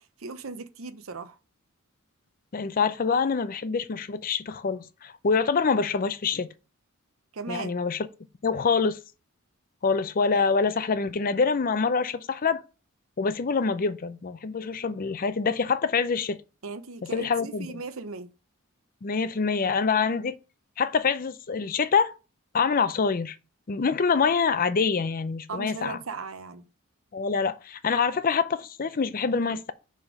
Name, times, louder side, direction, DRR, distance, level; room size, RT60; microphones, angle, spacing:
voice 1, 0.0-1.4 7.3-7.7 16.6-18.3 25.5-26.6, right 4 dB, 75° right, 0.7 m, -37 dB
voice 2, 2.5-6.5 7.5-8.1 8.4-9.0 9.8-12.6 13.2-16.4 17.1-17.7 19.0-20.4 20.8-22.1 22.5-23.4 23.7-26.0 27.1-29.7, left 5 dB, 40° left, 0.5 m, -25 dB
5.6 x 5.0 x 5.0 m
head